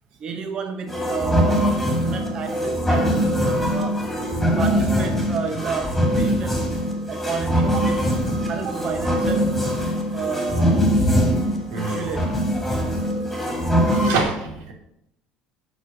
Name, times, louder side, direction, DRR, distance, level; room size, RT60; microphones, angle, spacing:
voice 1, 0.2-3.3 3.7-4.1 4.6-6.7 7.1-8.1 8.5-9.6 10.1-11.2 11.7-12.3, right 5 dB, 30° right, 5 dB, 0.9 m, -30 dB
sound 1, 0.9-14.1, equal, 5° left, 2.1 m, -22 dB
voice 2, 11.7-12.1 12.7-12.8 13.8-14.7, right 4 dB, 85° right, 1 dB, 2.9 m, -27 dB
8.2 x 5.9 x 7.4 m, 0.80 s
cardioid pair, 160°, 2 cm